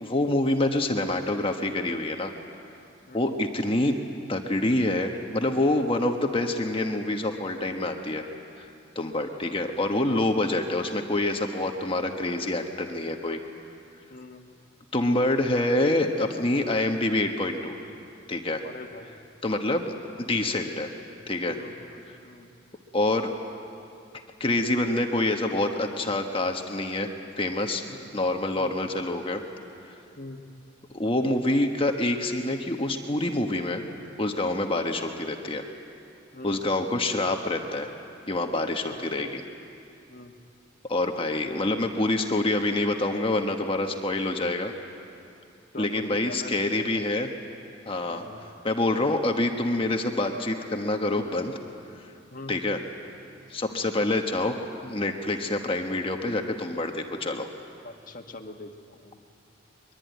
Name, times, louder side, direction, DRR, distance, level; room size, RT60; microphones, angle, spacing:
voice 1, 0.0-2.3 3.1-3.9 4.3-8.2 8.9-13.4 14.9-17.8 18.3-18.6 19.4-20.9 21.3-21.6 22.9-23.3 24.4-27.1 27.4-27.8 28.1-29.4 30.9-33.8 34.2-35.6 36.4-37.9 38.3-39.4 40.9-44.7 45.8-47.3 47.9-48.2 48.6-51.5 52.5-52.8 53.5-54.6 54.8-57.5, left 2 dB, 30° left, 4 dB, 1.3 m, -26 dB
voice 2, 14.1-14.5 18.6-19.2 21.5-22.5 27.9-28.1 28.6-28.7 30.2-30.4 36.3-36.6 38.9-39.1 40.1-40.4 45.7-47.2 48.1-48.4 52.3-52.6 53.6-53.9 57.8-59.2, left 2 dB, 45° left, 4 dB, 1.7 m, -43 dB
23.0 x 22.5 x 9.4 m, 2.5 s
head